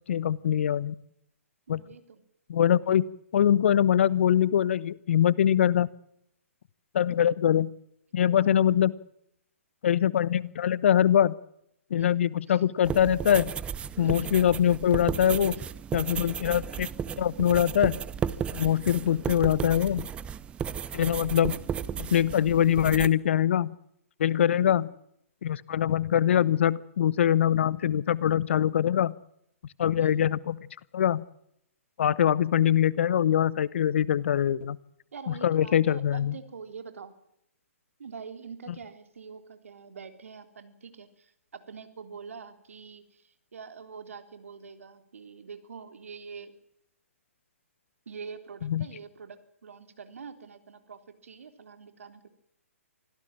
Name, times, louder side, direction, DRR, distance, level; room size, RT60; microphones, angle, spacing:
voice 1, 0.1-0.9 1.7-1.8 2.5-3.0 3.3-5.9 6.9-7.7 8.1-8.9 9.8-11.3 11.9-13.5 14.0-15.6 15.9-16.9 17.2-18.0 18.5-20.1 20.9-21.6 22.0-23.7 24.2-24.9 25.4-29.1 29.8-30.6 30.9-31.2 32.0-34.8 35.4-36.3 48.7-48.9, left 10 dB, 55° left, 22 dB, 0.9 m, -23 dB
voice 2, 1.7-2.2 7.1-7.2 8.2-8.9 12.0-12.6 14.0-14.3 15.5-15.6 16.1-16.4 24.4-24.8 30.0-30.2 35.1-37.1 38.0-46.5 48.0-52.3, right 5 dB, 70° right, 9 dB, 3.5 m, -45 dB
sound 1, 12.8-23.1, right 8 dB, 15° right, 0.8 m, -34 dB
25.5 x 16.5 x 7.5 m, 0.76 s
figure-of-eight pair, 130°, 8 cm